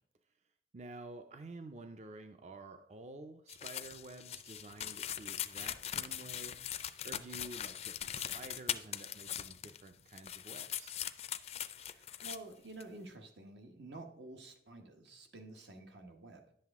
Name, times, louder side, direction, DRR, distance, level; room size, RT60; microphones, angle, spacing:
voice 1, 0.7-6.6 7.0-11.0, right 2 dB, 40° right, 8 dB, 0.4 m, -50 dB
sound 1, 3.5-9.9 10.1-12.4 12.8-12.9, left 10 dB, 35° left, 0.4 m, -41 dB
voice 2, 11.8-16.4, right 2 dB, 80° right, 5 dB, 1.2 m, -50 dB
10.5 x 7.7 x 3.5 m, 0.66 s
head